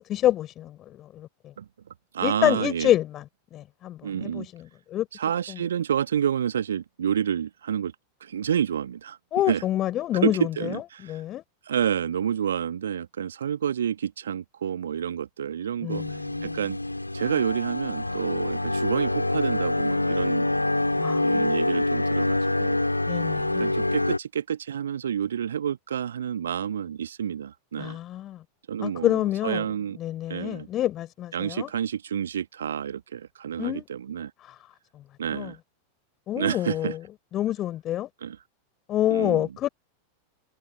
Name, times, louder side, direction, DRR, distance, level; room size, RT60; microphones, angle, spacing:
voice 1, 0.0-1.5 2.2-3.2 3.5-5.1 5.5-5.6 9.3-11.4 15.8-16.5 21.0-21.5 23.1-23.7 27.8-28.4 28.8-29.6 30.0-31.7 33.6-33.9 34.4-34.6 35.3-35.5 36.3-37.0 37.3-38.1 38.9-39.7, left 13 dB, 30° left, 5.0 m, -27 dB
voice 2, 2.1-2.9 4.0-4.5 5.1-7.9 8.2-9.2 9.5-9.6 10.1-11.2 11.6-16.8 17.1-20.5 21.2-22.8 23.3-28.0 28.7-30.0 30.3-30.7 31.3-34.3 35.2-35.6 36.3-37.0 38.2-38.4 39.1-39.5, right 8 dB, 65° right, 1.4 m, -29 dB
sound 1, 15.9-24.2, left 2 dB, 85° left, 3.3 m, -26 dB
figure-of-eight pair, 90°, 0 cm